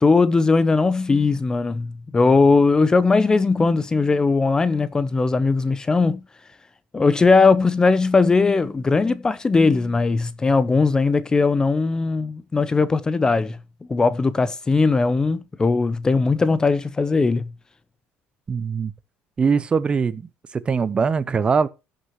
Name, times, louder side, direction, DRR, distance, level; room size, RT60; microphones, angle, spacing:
voice 1, 0.0-6.2 6.9-13.6 13.9-17.5, left 4 dB, 15° left, 0.5 m, -19 dB
voice 2, 18.5-18.9 19.4-20.3 20.5-21.7, right 5 dB, 25° right, 0.7 m, -21 dB
15.5 x 6.6 x 3.0 m
cardioid pair, 145°, 4 cm